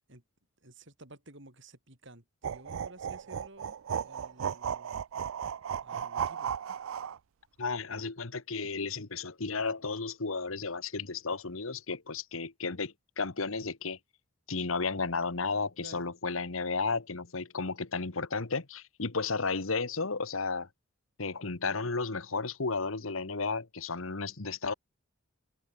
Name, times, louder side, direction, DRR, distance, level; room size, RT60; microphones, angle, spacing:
voice 1, 0.6-5.0 5.8-6.5 15.8-16.1, right 2 dB, 60° right, 6.6 m, -53 dB
sound 1, 2.4-7.2, right 8 dB, 75° right, 0.4 m, -35 dB
voice 2, 7.6-14.0 14.5-20.7 21.2-24.7, left 4 dB, 75° left, 1.4 m, -33 dB
head